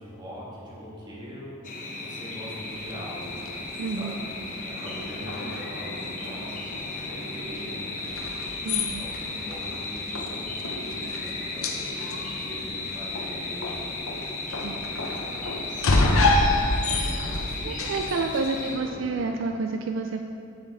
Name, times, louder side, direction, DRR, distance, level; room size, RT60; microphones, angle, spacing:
voice 1, 0.0-3.4 4.0-4.3 4.6-8.0 8.6-13.7 14.7-16.1 16.8-19.2, equal, 20° right, -7 dB, 1.8 m, -42 dB
sound 1, 1.6-18.8, left 3 dB, 40° left, 0.9 m, -35 dB
sound 2, 2.7-18.9, left 2 dB, 90° left, 0.7 m, -30 dB
voice 2, 3.8-4.3 8.6-9.1 14.6-14.8 17.6-20.2, right 3 dB, 65° right, 4 dB, 0.4 m, -29 dB
7.6 x 7.3 x 4.1 m, 2.6 s
head